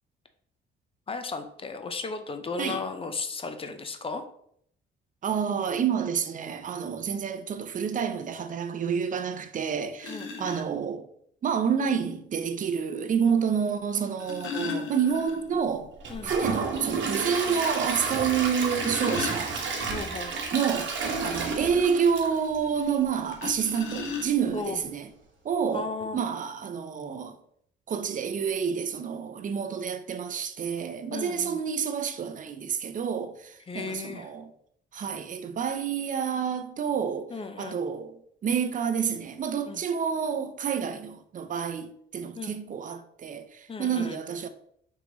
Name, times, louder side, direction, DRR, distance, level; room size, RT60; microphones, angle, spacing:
voice 1, 1.1-4.2 10.1-10.6 16.1-16.3 19.9-20.3 24.5-24.8 25.7-26.2 31.1-31.6 33.7-34.3 37.3-37.8 39.6-39.8 42.3-42.5 43.7-44.2, left 4 dB, 30° left, 0.6 m, -35 dB
voice 2, 5.2-11.0 11.4-15.9 16.2-19.6 20.5-20.9 21.2-25.1 25.4-27.4 27.9-34.5 34.9-37.3 37.6-38.2 38.4-44.5, right 7 dB, 40° right, 0.5 m, -29 dB
sound 1, 9.3-9.4 10.0-10.6 12.0-12.1 13.9-15.7 16.0-16.1 16.5-16.6 17.1-17.2 18.4-20.0 23.3-24.7 25.5-25.6 26.0-26.2, left 5 dB, 80° left, 0.8 m, -36 dB
Gurgling / Toilet flush / Trickle dribble, 16.0-23.1 23.5-23.6 24.1-24.2, right 4 dB, 65° right, 1.0 m, -31 dB
3.7 x 3.0 x 3.9 m
cardioid pair, 90°, 20 cm